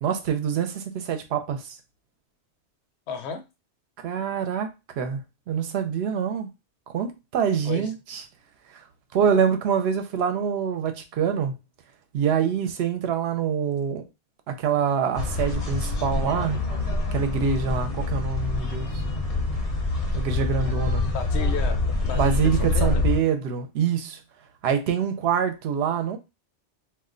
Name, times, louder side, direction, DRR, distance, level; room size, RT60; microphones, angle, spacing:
voice 1, 0.0-1.8 4.0-5.2 5.5-6.5 6.9-8.2 8.7-8.9 9.1-11.5 12.1-14.0 14.5-16.6 17.1-19.0 20.1-21.1 22.1-24.2 24.6-26.2, right 7 dB, 70° right, 0.8 m, -25 dB
voice 2, 3.1-3.4 7.6-7.9 21.0-23.0, left 5 dB, 75° left, 0.9 m, -33 dB
sound 1, 15.2-23.2, left 2 dB, 40° left, 0.6 m, -26 dB
2.4 x 2.1 x 3.7 m
omnidirectional pair, 1.2 m